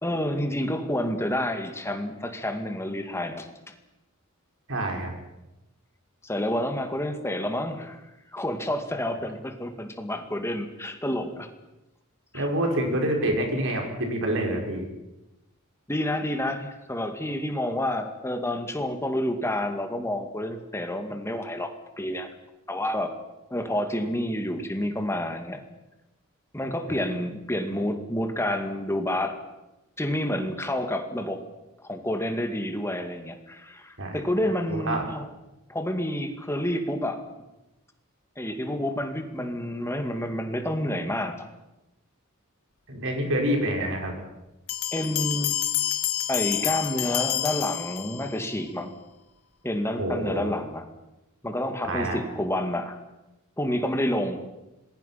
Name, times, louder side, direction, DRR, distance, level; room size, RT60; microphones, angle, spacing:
voice 1, 0.0-3.7 6.2-8.0 8.3-11.5 12.3-12.5 15.9-22.3 22.7-23.1 23.5-25.6 26.5-29.4 30.0-31.4 31.8-35.2 35.7-37.2 38.4-41.4 44.9-45.5 46.3-48.9 49.6-50.8 51.4-53.0 53.6-54.4, left 1 dB, 10° left, 6 dB, 2.2 m, -29 dB
voice 2, 4.7-5.2 12.3-14.9 34.0-34.2 34.7-35.1 42.9-44.1 50.0-50.5 51.8-52.2, right 1 dB, 65° right, 2 dB, 5.3 m, -27 dB
sound 1, 44.7-48.5, left 12 dB, 85° left, 1.5 m, -28 dB
26.5 x 21.0 x 5.9 m, 0.96 s
head